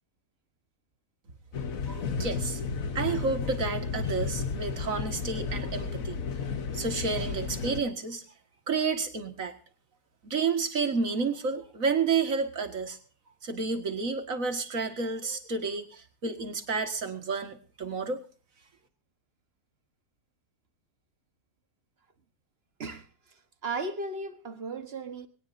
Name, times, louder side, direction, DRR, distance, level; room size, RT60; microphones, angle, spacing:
sound 1, 1.5-7.8, left 5 dB, 60° left, 1.6 m, -33 dB
voice 1, 1.9-2.6 2.9-6.2 6.7-8.2 8.7-9.5 10.2-13.0 13.4-18.2, right 4 dB, 55° right, 2.3 m, -30 dB
voice 2, 22.8-25.3, right 3 dB, 40° right, 1.5 m, -36 dB
21.5 x 18.0 x 2.7 m
omnidirectional pair, 1.7 m